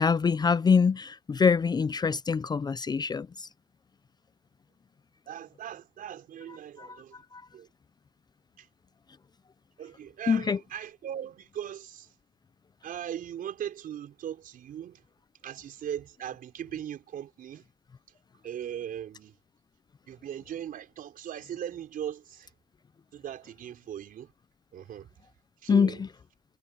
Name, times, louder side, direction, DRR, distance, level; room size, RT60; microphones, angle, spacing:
voice 1, 0.0-3.5 10.3-10.6 25.7-26.0, left 5 dB, 25° left, 0.5 m, -24 dB
voice 2, 5.3-7.2 7.5-7.7 8.6-8.7 9.8-12.1 12.8-15.0 15.4-17.7 18.4-19.4 20.1-22.5 23.1-24.3 24.7-25.1 25.6-26.0, right 10 dB, 55° right, 4.8 m, -39 dB
cardioid pair, 110°, 17 cm